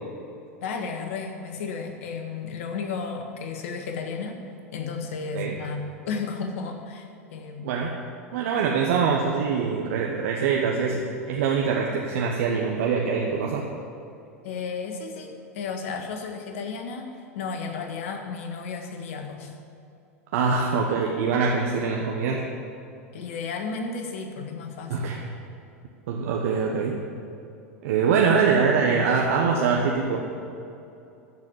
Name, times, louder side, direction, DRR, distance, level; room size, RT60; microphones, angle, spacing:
voice 1, 0.6-4.4 4.7-7.7 14.4-19.5 23.1-25.1, left 5 dB, 65° left, 4 dB, 1.6 m, -33 dB
voice 2, 8.3-13.7 20.3-22.5 24.9-25.2 26.1-27.0 27.8-30.2, right 5 dB, 70° right, -1 dB, 1.1 m, -24 dB
13.5 x 4.9 x 7.9 m, 2.7 s
hypercardioid pair, 95°, 8 cm